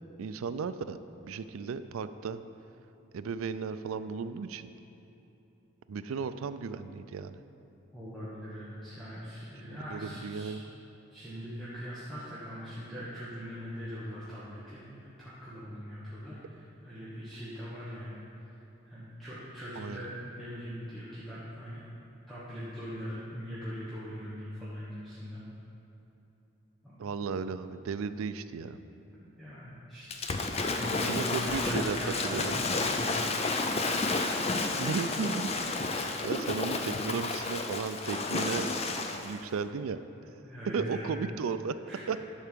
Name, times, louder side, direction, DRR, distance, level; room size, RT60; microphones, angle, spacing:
voice 1, 0.2-1.0 1.2-2.4 3.1-4.7 5.9-7.4 9.9-10.6 19.8-20.0 27.0-28.8 31.1-32.0 32.2-32.5 34.8-35.5 36.2-40.0 40.7-41.8 42.1-42.3, right 5 dB, 85° right, 12 dB, 0.4 m, -35 dB
voice 2, 7.9-10.6 11.1-18.1 18.9-21.8 22.3-25.4 26.8-27.0 28.7-28.9 29.1-34.6 35.9-36.3 40.4-41.1 41.9-42.0, equal, ahead, -11 dB, 1.3 m, -41 dB
Waves surf / Splash splatter, 30.1-39.4, left 3 dB, 30° left, 0.5 m, -31 dB
10.5 x 4.6 x 6.7 m, 3.0 s
head